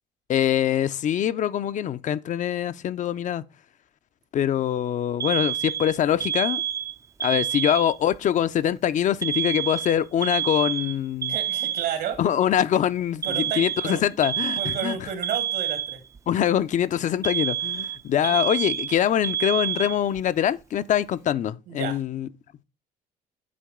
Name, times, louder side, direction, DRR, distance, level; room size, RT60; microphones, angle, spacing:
voice 1, 0.3-3.4 4.3-6.6 7.2-11.4 12.2-15.0 16.3-22.3, left 10 dB, 45° left, 0.4 m, -24 dB
Alarm, 5.2-8.2 9.2-12.2 13.2-16.2 17.2-20.2, right 10 dB, 15° right, 0.3 m, -28 dB
voice 2, 11.3-12.2 13.2-14.0 14.6-16.0 18.3-18.4 21.7-22.0, right 8 dB, 75° right, 2.0 m, -31 dB
8.5 x 4.6 x 3.6 m
cardioid pair, 110°, 17 cm